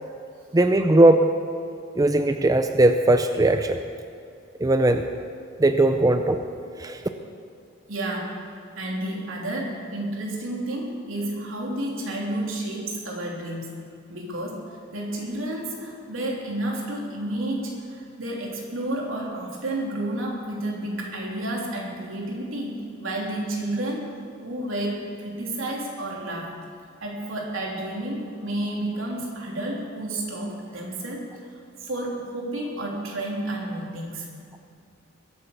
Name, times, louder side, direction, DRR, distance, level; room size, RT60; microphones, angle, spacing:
voice 1, 0.5-1.3 2.0-3.8 4.6-5.0 5.6-6.4 6.8-7.0, right 2 dB, 20° right, 7 dB, 0.5 m, -19 dB
voice 2, 7.9-8.4 8.8-13.8 14.1-24.1 24.4-26.5 27.0-34.3, right 1 dB, 80° right, -2 dB, 3.4 m, -31 dB
22.0 x 8.7 x 6.8 m, 2.4 s
head